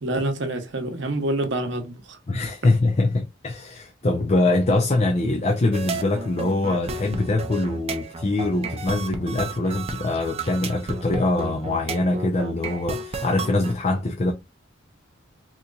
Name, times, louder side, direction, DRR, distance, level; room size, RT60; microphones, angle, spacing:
voice 1, 0.0-2.2, right 1 dB, 60° right, 0.8 m, -27 dB
voice 2, 2.3-14.3, left 2 dB, 30° left, 0.5 m, -23 dB
sound 1, 5.7-13.7, right 3 dB, 30° right, 0.5 m, -33 dB
3.9 x 2.9 x 2.3 m
head